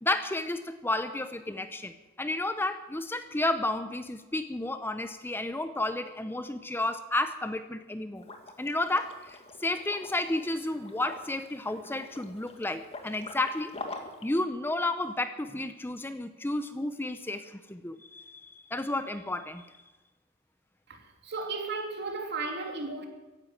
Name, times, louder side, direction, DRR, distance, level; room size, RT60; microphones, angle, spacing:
voice 1, 0.0-8.3 8.6-13.7 14.2-19.6, left 2 dB, 10° left, 0.7 m, -32 dB
Liquid, 8.2-14.3, left 2 dB, 30° left, 2.0 m, -45 dB
voice 2, 20.9-23.1, right 3 dB, 60° right, 3.0 m, -35 dB
16.0 x 11.0 x 7.6 m
head